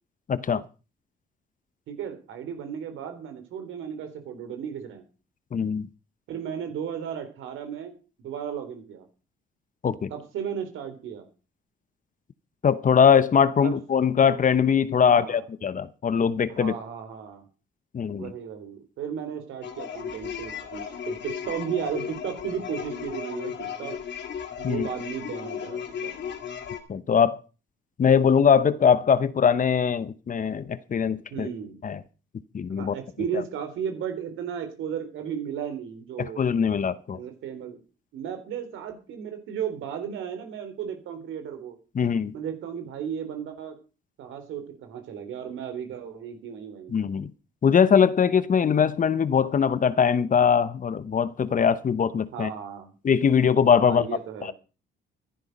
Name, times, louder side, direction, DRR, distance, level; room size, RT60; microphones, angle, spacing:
voice 1, 0.3-0.6 5.5-5.9 9.8-10.1 12.6-16.7 17.9-18.3 24.6-24.9 26.9-27.4 28.0-31.5 31.8-32.0 32.5-32.9 36.2-37.2 41.9-42.3 46.9-47.3 47.6-52.5 53.0-54.5, left 7 dB, 40° left, 0.9 m, -21 dB
voice 2, 1.9-5.0 6.3-7.9 8.2-9.1 10.1-11.3 13.6-13.8 15.0-15.4 16.5-17.4 18.2-24.0 24.6-26.2 31.3-31.8 32.7-36.4 37.1-37.8 38.1-41.8 42.3-43.8 44.2-47.0 52.3-52.9 53.8-54.5, right 8 dB, 85° right, 3.7 m, -35 dB
sound 1, 19.6-26.8, left 8 dB, 65° left, 2.4 m, -35 dB
13.0 x 11.5 x 5.4 m
cardioid pair, 90°, 20 cm